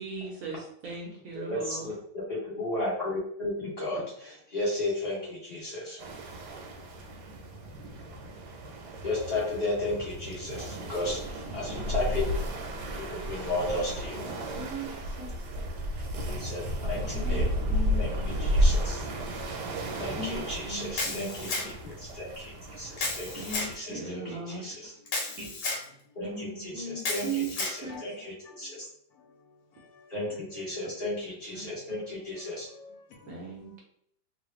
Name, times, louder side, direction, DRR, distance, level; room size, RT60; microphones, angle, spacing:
voice 1, 0.0-1.9 14.1-15.3 17.1-18.3 20.2-21.5 23.4-24.6 25.4-25.5 26.2-27.5 27.8-28.0 31.5-31.6 33.3-33.8, right 3 dB, 65° right, 0.9 m, -38 dB
voice 2, 1.3-6.1 9.0-12.2 12.9-14.4 16.3-17.5 17.9-19.0 20.0-21.7 22.0-24.9 26.1-28.8 30.1-32.7, left 2 dB, 25° left, 1.2 m, -34 dB
sound 1, 6.0-23.7, equal, 80° right, 1.2 m, -32 dB
voice 3, 19.3-19.7 27.9-28.7 29.1-29.3 29.7-30.1 31.6-31.7 32.4-33.5, left 4 dB, 70° left, 1.0 m, -52 dB
Camera, 21.0-21.9 23.0-23.7 25.1-25.8 27.0-27.8, left 3 dB, 85° left, 1.4 m, -32 dB
3.1 x 2.2 x 3.0 m
omnidirectional pair, 1.8 m